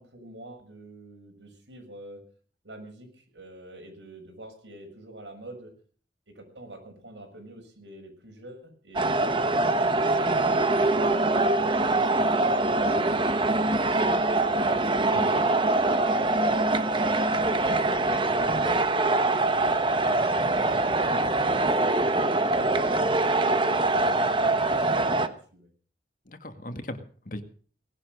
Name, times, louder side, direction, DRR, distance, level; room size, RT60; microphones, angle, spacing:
voice 1, 0.0-2.2 2.6-5.7 6.3-11.8 12.4-15.6 15.9-16.1 16.5-17.5 17.9-21.7 22.4-25.7, right 1 dB, 90° right, 3 dB, 7.0 m, -46 dB
sound 1, 9.0-25.3, right 2 dB, 30° right, 1.2 m, -24 dB
voice 2, 15.1-15.5 26.3-27.4, left 1 dB, 50° left, 7 dB, 1.9 m, -38 dB
19.0 x 12.0 x 6.4 m, 0.44 s
head